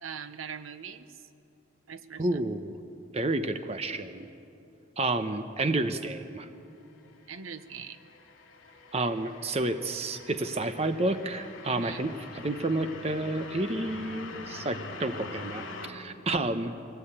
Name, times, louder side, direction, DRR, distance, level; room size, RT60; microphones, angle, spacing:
voice 1, 0.0-1.3 1.9-2.4 7.3-8.0 11.7-12.0, right 6 dB, 80° right, 11 dB, 0.9 m, -41 dB
voice 2, 2.2-2.8 3.1-4.3 5.0-6.5 8.9-12.1 12.4-16.8, right 2 dB, 30° right, 9 dB, 0.8 m, -30 dB
sound 1, 6.7-15.9, left 3 dB, 80° left, 2.5 m, -44 dB
23.5 x 17.5 x 8.9 m, 2.7 s
head